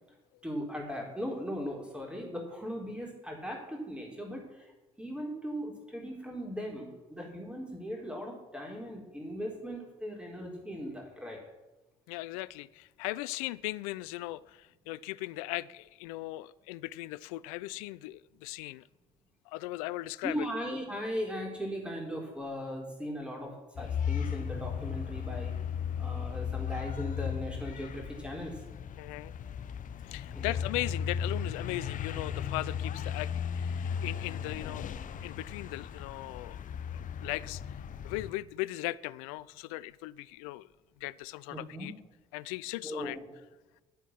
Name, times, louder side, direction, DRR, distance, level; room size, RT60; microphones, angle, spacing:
voice 1, 0.4-4.7 5.0-11.4 20.2-25.5 26.0-28.6 30.3-30.6 41.5-41.9 42.8-43.2, equal, 5° right, 4.2 m, -38 dB
voice 2, 12.1-18.9 19.5-20.5 29.0-29.3 30.0-34.9 35.2-36.6 36.9-37.6 38.0-40.7 41.0-41.9 42.3-43.2, left 18 dB, 70° left, 0.4 m, -38 dB
sound 1, 23.8-38.3, left 7 dB, 45° left, 0.8 m, -36 dB
11.0 x 8.1 x 6.1 m
hypercardioid pair, 55°, 19 cm